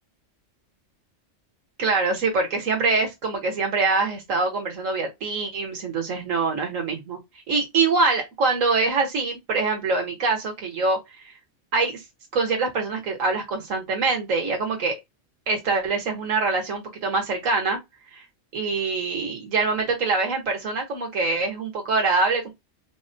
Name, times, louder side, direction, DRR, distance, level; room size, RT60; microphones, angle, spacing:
voice 1, 1.8-7.2 7.5-11.0 11.7-12.0 12.3-15.0 15.5-17.8 18.1-18.2 18.5-22.5, right 3 dB, 80° right, 1.7 m, -24 dB
4.6 x 2.1 x 2.7 m
omnidirectional pair, 1.3 m